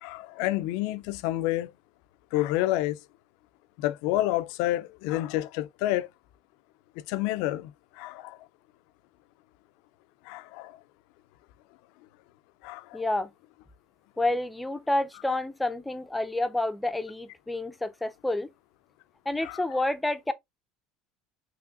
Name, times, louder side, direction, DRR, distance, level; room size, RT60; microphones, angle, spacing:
voice 1, 0.0-1.7 2.3-3.0 3.8-6.1 7.1-7.7 8.0-8.4 10.3-10.7 12.6-13.0 19.4-19.6, left 15 dB, 75° left, 0.3 m, -29 dB
voice 2, 12.9-13.3 14.2-18.5 19.3-20.3, left 2 dB, 5° left, 0.4 m, -29 dB
5.9 x 3.0 x 2.4 m
supercardioid pair, 125°, 0 cm